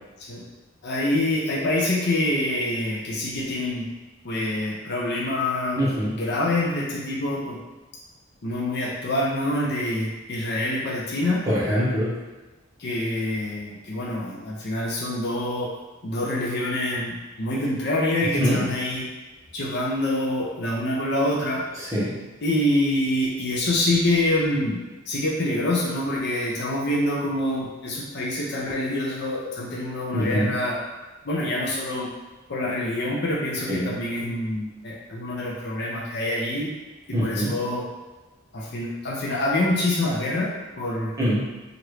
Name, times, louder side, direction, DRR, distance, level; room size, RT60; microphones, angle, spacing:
voice 1, 0.8-3.9 4.2-7.6 8.4-11.4 12.8-15.7 16.0-19.1 19.5-21.6 22.4-24.8 25.1-30.8 31.2-32.1 32.5-36.7 37.1-37.9 38.5-41.1, left 1 dB, 50° left, -3 dB, 0.5 m, -26 dB
voice 2, 5.8-6.1 11.5-12.1 18.4-18.6 21.8-22.1 30.1-30.5 33.7-33.9 37.1-37.5 41.2-41.5, equal, 15° right, -9 dB, 0.8 m, -23 dB
3.0 x 2.5 x 3.1 m, 1.2 s
head